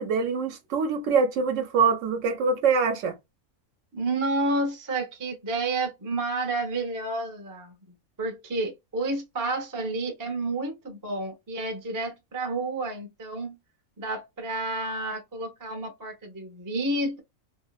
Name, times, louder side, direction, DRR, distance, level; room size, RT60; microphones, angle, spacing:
voice 1, 0.0-3.2, right 5 dB, 70° right, 0.8 m, -24 dB
voice 2, 3.9-7.7 8.2-13.6 14.0-17.2, right 2 dB, 30° right, 0.3 m, -30 dB
2.6 x 2.1 x 2.3 m
omnidirectional pair, 1.5 m